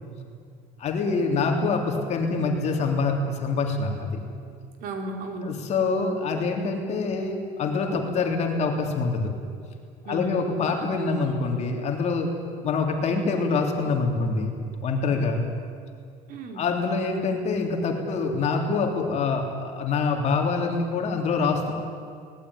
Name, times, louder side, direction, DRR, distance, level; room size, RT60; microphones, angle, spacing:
voice 1, 0.8-4.1 5.4-9.3 10.1-12.3 12.6-14.6 14.8-15.5 16.5-21.7, left 4 dB, 45° left, 2 dB, 3.3 m, -25 dB
voice 2, 4.8-5.5 10.1-10.6 16.3-16.6, right 2 dB, 65° right, 4 dB, 4.0 m, -33 dB
23.5 x 19.0 x 9.9 m, 2.2 s
cardioid pair, 155°, 16 cm